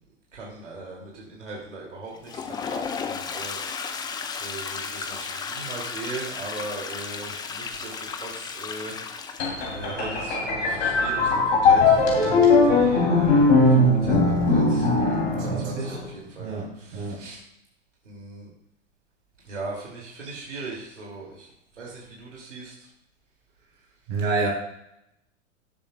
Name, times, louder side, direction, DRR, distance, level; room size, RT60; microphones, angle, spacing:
voice 1, 0.3-3.8 4.4-9.0 9.7-17.4 18.0-18.5 19.4-21.5 21.7-22.9, right 3 dB, 70° right, -3 dB, 2.8 m, -39 dB
Toilet flush, 2.1-9.8, left 5 dB, 10° left, 0.5 m, -34 dB
sound 1, 9.4-16.1, left 3 dB, 60° left, 3.3 m, -20 dB
voice 2, 15.4-16.0 16.4-17.2 24.1-24.5, right 3 dB, 45° right, -1 dB, 3.5 m, -29 dB
17.5 x 7.4 x 2.4 m, 0.80 s
figure-of-eight pair, 95°, 37 cm